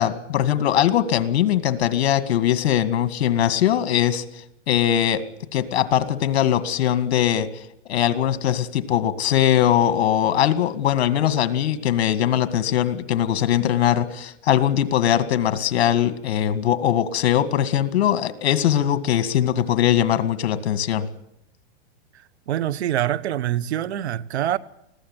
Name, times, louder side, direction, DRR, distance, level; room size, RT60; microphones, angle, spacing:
voice 1, 0.0-4.2 4.7-5.2 5.5-7.5 7.9-21.1, left 10 dB, 70° left, 2.1 m, -21 dB
voice 2, 22.1-24.6, right 12 dB, 75° right, 1.2 m, -25 dB
21.0 x 15.5 x 9.8 m
supercardioid pair, 155°, 33 cm